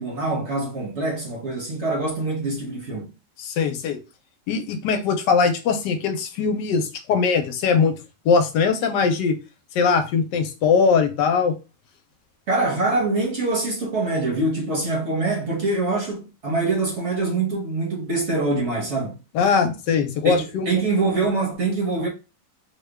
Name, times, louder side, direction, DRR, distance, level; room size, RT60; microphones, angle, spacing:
voice 1, 0.0-3.1 12.5-19.2 20.2-22.1, right 3 dB, 50° right, 0.9 m, -24 dB
voice 2, 3.4-4.0 4.5-8.0 8.2-9.3 9.7-11.5 19.3-20.7, left 5 dB, 90° left, 1.3 m, -21 dB
3.1 x 2.2 x 3.3 m
omnidirectional pair, 1.9 m